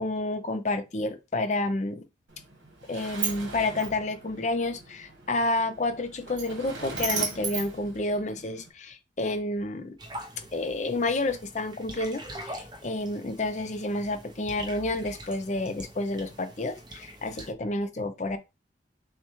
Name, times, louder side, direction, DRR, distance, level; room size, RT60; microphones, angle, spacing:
voice 1, 0.0-2.1 2.9-10.0 10.4-18.4, left 2 dB, 40° left, 0.5 m, -30 dB
Sliding door, 2.3-8.7, right 4 dB, 80° right, 1.3 m, -36 dB
sound 1, 10.0-17.5, right 1 dB, 25° right, 0.6 m, -44 dB
6.2 x 2.3 x 3.1 m
head